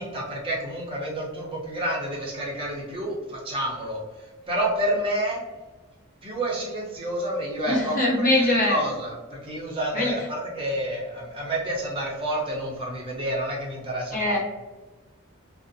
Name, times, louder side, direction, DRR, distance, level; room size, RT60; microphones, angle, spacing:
voice 1, 0.0-4.0 4.5-5.4 6.2-8.2 8.7-14.4, right 1 dB, 25° right, -3 dB, 0.6 m, -29 dB
voice 2, 7.7-8.8 9.9-10.3 14.1-14.4, left 1 dB, 40° left, -4 dB, 0.7 m, -22 dB
2.5 x 2.0 x 2.5 m, 1.2 s
head